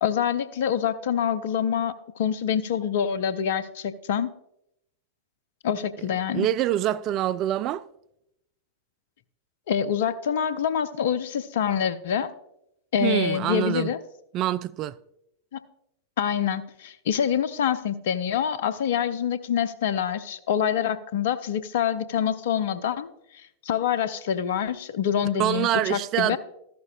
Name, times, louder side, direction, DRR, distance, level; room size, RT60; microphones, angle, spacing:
voice 1, 0.0-4.3 5.6-6.5 9.7-12.3 12.9-14.0 15.5-15.6 16.2-23.1 23.6-26.4, left 8 dB, 55° left, 0.6 m, -26 dB
voice 2, 6.3-7.8 13.0-13.9 14.3-15.0 25.4-26.4, right 13 dB, 35° right, 0.3 m, -25 dB
13.5 x 11.0 x 2.4 m
figure-of-eight pair, 90°, 0 cm